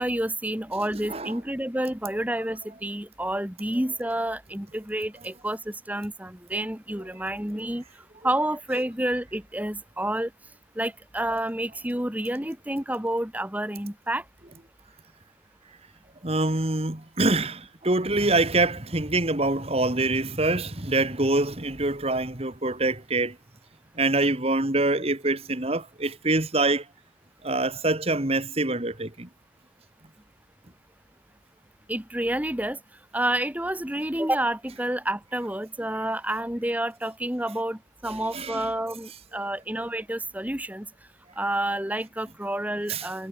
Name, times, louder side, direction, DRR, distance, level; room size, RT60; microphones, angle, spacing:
voice 1, 0.0-7.8 8.2-10.3 10.8-14.2 31.9-32.8 33.1-40.9 41.4-43.3, right 1 dB, 10° right, 1.9 m, -29 dB
voice 2, 16.2-23.4 24.0-26.8 27.4-29.3 38.1-38.7 42.9-43.1, right 2 dB, 30° right, 1.9 m, -25 dB
head